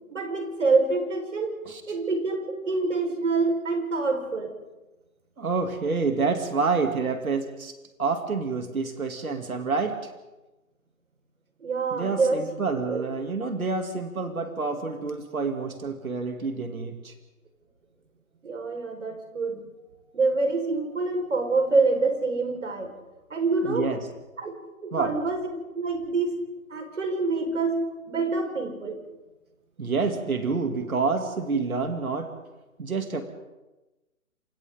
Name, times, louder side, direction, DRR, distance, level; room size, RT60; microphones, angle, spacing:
voice 1, 0.1-1.5 1.9-4.5 11.6-12.4 12.9-13.0 18.4-19.7 20.1-22.9 23.3-23.9 24.4-24.6 24.8-25.5 25.7-26.4 26.7-29.0, right 3 dB, 60° right, 3 dB, 5.3 m, -26 dB
voice 2, 5.4-7.7 8.0-10.0 11.9-17.1 23.6-24.0 24.9-25.1 29.8-32.3 32.8-33.2, right 4 dB, 90° right, 5 dB, 3.0 m, -28 dB
28.0 x 27.5 x 3.9 m, 1.1 s
hypercardioid pair, 170°, 41 cm